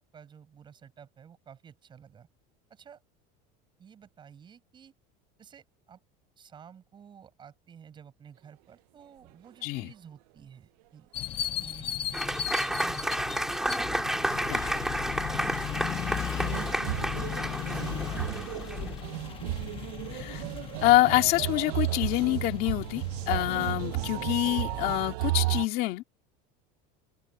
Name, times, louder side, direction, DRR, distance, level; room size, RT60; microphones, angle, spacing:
voice 1, 0.0-2.3 2.7-3.0 3.8-4.9 5.4-6.0 6.4-11.1 11.6-13.5 14.2-16.9 17.3-19.3, right 7 dB, 25° right, 6.7 m, -52 dB
voice 2, 9.6-9.9 14.5-14.7 20.1-20.4 20.8-26.0, left 18 dB, 50° left, 2.3 m, -26 dB
sound 1, 11.1-25.1, left 10 dB, 25° left, 1.0 m, -37 dB
Applause / Crowd, 12.1-19.0, right 1 dB, ahead, 2.8 m, -31 dB
sound 2, 12.4-12.6 14.0-14.3 14.6-14.7 16.4-25.7, right 20 dB, 80° right, 0.5 m, -33 dB
cardioid pair, 165°, 20 cm